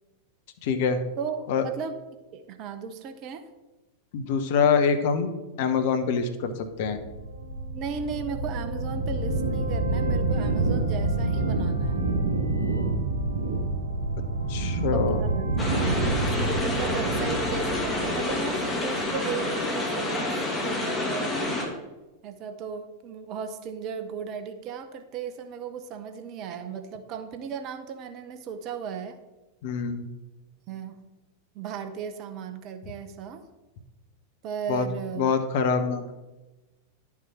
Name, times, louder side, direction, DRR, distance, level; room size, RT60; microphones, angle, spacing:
voice 1, 0.6-1.0 1.5-1.7 4.1-5.3 5.6-7.0 14.5-15.2 29.6-30.1 34.7-34.8 35.2-36.2, left 6 dB, 50° left, 8 dB, 1.0 m, -25 dB
voice 2, 1.2-2.0 2.3-3.4 7.7-12.1 14.9-20.2 20.6-21.6 22.2-29.2 30.7-31.1 31.5-33.4 34.4-35.3, right 7 dB, 40° right, 8 dB, 0.9 m, -36 dB
sound 1, 6.8-18.9, right 2 dB, 70° right, 2.0 m, -27 dB
Binaural Light-Harder Rain Skopje Balcony Noise, 15.6-21.7, left 2 dB, 15° left, 2.1 m, -28 dB
11.0 x 6.0 x 4.4 m, 1.1 s
figure-of-eight pair, 90°, 0 cm